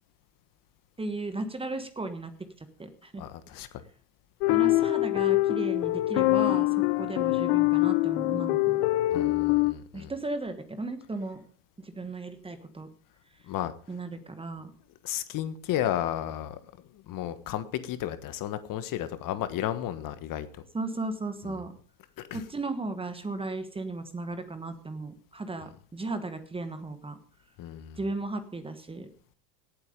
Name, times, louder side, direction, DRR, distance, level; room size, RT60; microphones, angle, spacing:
voice 1, 1.0-2.3 2.6-3.2 4.5-8.8 9.9-11.4 11.8-12.9 13.9-14.7 20.7-21.7 22.3-27.2 28.0-29.1, right 2 dB, 10° right, 10 dB, 1.4 m, -35 dB
voice 2, 3.2-3.7 9.1-10.1 13.5-13.7 15.0-16.6 17.1-20.5 22.3-22.4 27.6-28.0, left 12 dB, 45° left, 12 dB, 1.3 m, -33 dB
sound 1, 4.4-9.7, left 18 dB, 65° left, 1.0 m, -24 dB
17.5 x 8.1 x 5.2 m, 0.43 s
supercardioid pair, 115°, 46 cm